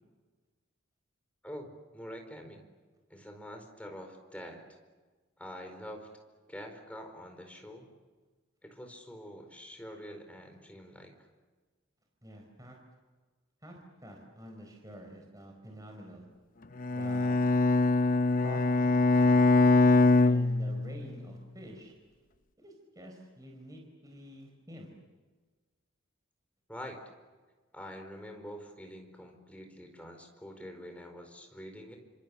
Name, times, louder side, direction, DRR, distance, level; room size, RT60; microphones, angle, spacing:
voice 1, 1.4-2.6 3.1-4.6 5.4-6.1 6.5-7.9 8.6-11.1 26.7-27.0 27.7-32.0, equal, 5° left, 4 dB, 4.7 m, -45 dB
voice 2, 12.2-12.8 13.6-16.3 16.9-17.4 18.4-19.4 20.2-21.9 22.6-24.9, equal, 20° right, 2 dB, 4.6 m, -48 dB
Bowed string instrument, 16.8-21.2, left 2 dB, 40° left, 0.8 m, -23 dB
30.0 x 27.0 x 7.2 m, 1.4 s
head